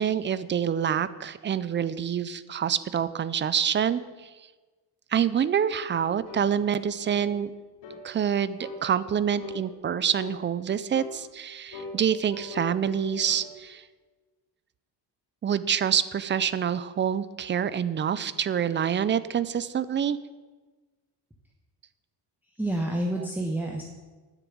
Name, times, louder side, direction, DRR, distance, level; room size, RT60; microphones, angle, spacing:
voice 1, 0.0-4.3 5.1-7.5 8.0-13.8 15.4-20.2, right 8 dB, 30° right, 15 dB, 0.4 m, -26 dB
sound 1, 6.3-6.5 7.0-7.3 7.8-8.1 8.6-8.8 9.4-9.6 10.1-10.4 10.9-11.2 11.7-13.5, left 3 dB, 80° left, 2.5 m, -40 dB
voice 2, 22.5-23.8, right 1 dB, 5° right, 0 dB, 1.0 m, -28 dB
9.8 x 7.0 x 8.4 m, 1.3 s
cardioid pair, 140°, 44 cm